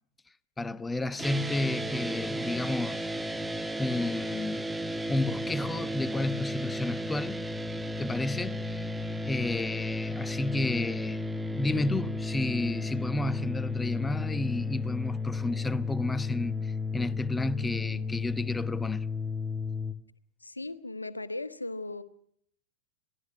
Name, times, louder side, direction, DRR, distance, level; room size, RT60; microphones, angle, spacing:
voice 1, 0.6-3.0 3.8-4.6 5.1-7.4 8.0-9.0 9.2-11.2 11.5-19.1, left 2 dB, 10° left, 0.9 m, -31 dB
sound 1, 1.2-19.9, left 2 dB, 5° right, 1.4 m, -33 dB
voice 2, 20.4-22.0, left 2 dB, 80° left, 1.4 m, -37 dB
26.5 x 19.5 x 6.3 m
figure-of-eight pair, 90°, 0 cm